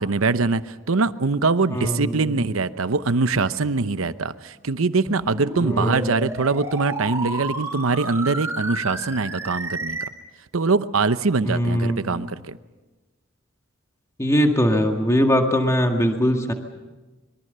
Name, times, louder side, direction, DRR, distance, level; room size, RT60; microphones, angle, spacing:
voice 1, 0.0-10.0 10.5-12.6, right 4 dB, 80° right, 13 dB, 0.8 m, -23 dB
voice 2, 1.7-2.3 5.6-6.2 11.4-12.1 14.2-16.5, equal, 15° left, 3 dB, 1.9 m, -21 dB
sound 1, 5.1-10.1, right 2 dB, 15° right, 2.7 m, -31 dB
25.0 x 22.5 x 6.8 m, 1.2 s
head